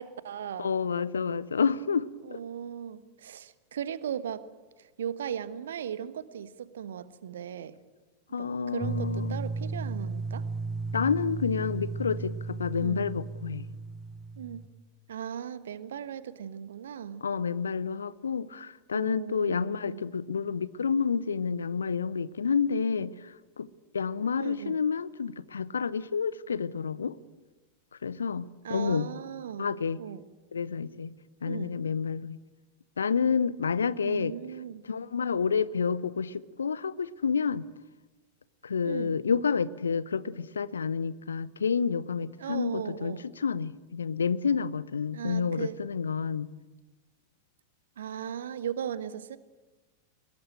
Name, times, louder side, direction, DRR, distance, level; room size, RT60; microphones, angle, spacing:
voice 1, 0.0-0.7 2.2-4.4 4.8-7.7 8.3-10.5 12.7-13.1 14.4-14.6 15.1-17.2 18.9-20.1 24.4-24.8 28.6-30.2 31.4-31.8 34.0-34.8 38.8-39.2 42.4-43.2 45.1-45.7 48.0-49.4, right 9 dB, 65° right, 14 dB, 1.4 m, -37 dB
voice 2, 0.6-2.4 8.3-9.4 10.9-13.7 17.2-23.7 23.9-27.2 28.0-29.1 29.6-30.0 30.5-31.1 31.4-32.4 33.0-34.3 34.9-37.6 38.6-46.5, left 6 dB, 70° left, 19 dB, 0.8 m, -29 dB
sound 1, 8.8-14.7, right 3 dB, 20° right, 1.2 m, -35 dB
23.5 x 21.0 x 9.0 m, 1.2 s
figure-of-eight pair, 90°, 0 cm